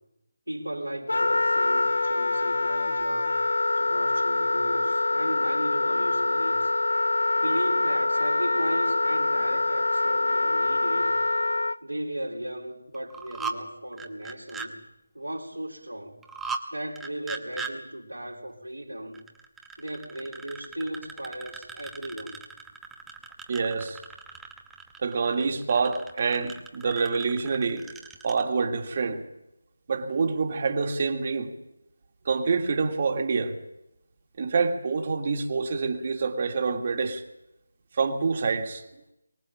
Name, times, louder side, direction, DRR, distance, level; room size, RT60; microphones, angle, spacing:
voice 1, 0.5-3.4 3.7-6.7 7.4-11.2 11.8-14.8 15.1-16.2 16.7-19.2 19.8-22.5, right 1 dB, 85° right, 4.0 m, -36 dB
Wind instrument woodwind instrument, 1.1-11.8, left 2 dB, 70° left, 0.7 m, -25 dB
sound 1, 12.9-13.6 13.9-14.7 16.2-16.6 17.0-17.7 19.1-28.4, right 4 dB, 5° right, 0.9 m, -39 dB
voice 2, 23.5-24.0 25.0-27.8 28.2-29.2 29.9-31.5 32.3-33.6 34.4-37.2 38.0-38.8, right 4 dB, 35° right, 2.1 m, -26 dB
23.5 x 19.5 x 7.3 m
figure-of-eight pair, 160°, 0 cm